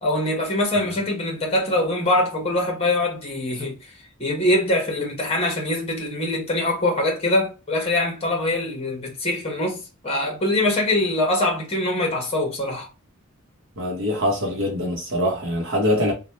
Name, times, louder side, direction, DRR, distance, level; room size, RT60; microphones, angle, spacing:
voice 1, 0.0-3.8 4.2-12.9, left 1 dB, 30° left, 1.2 m, -23 dB
voice 2, 13.8-16.1, left 1 dB, 60° right, 0.9 m, -23 dB
3.1 x 2.2 x 3.0 m
head